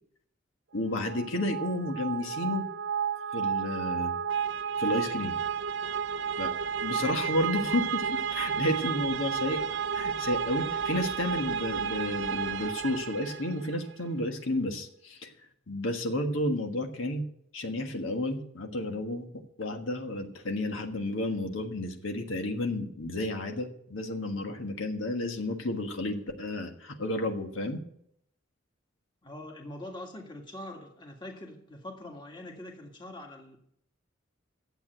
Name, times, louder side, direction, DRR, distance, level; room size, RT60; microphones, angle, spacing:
voice 1, 0.7-2.7 3.3-4.1 4.8-5.4 6.4-6.5 6.8-9.6 9.9-15.3 15.7-17.2 17.5-19.3 19.6-27.8, left 1 dB, 80° left, 3 dB, 1.6 m, -31 dB
sound 1, 1.0-13.8, right 7 dB, 65° right, 0.5 m, -32 dB
voice 2, 29.2-33.6, left 1 dB, 20° left, 1 dB, 1.9 m, -43 dB
12.0 x 8.2 x 7.8 m, 0.71 s
head